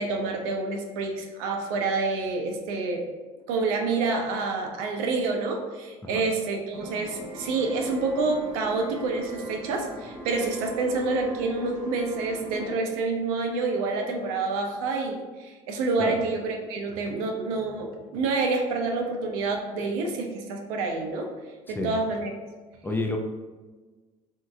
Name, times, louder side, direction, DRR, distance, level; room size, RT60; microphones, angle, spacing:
voice 1, 0.0-3.0 3.5-21.3 21.7-22.3, right 3 dB, 75° right, 2 dB, 0.5 m, -28 dB
sound 1, 6.7-12.7, right 1 dB, 45° right, 0.8 m, -39 dB
voice 2, 22.8-23.2, left 2 dB, 10° left, 2 dB, 0.4 m, -28 dB
3.7 x 2.7 x 2.3 m, 1.3 s
hypercardioid pair, 65°, 19 cm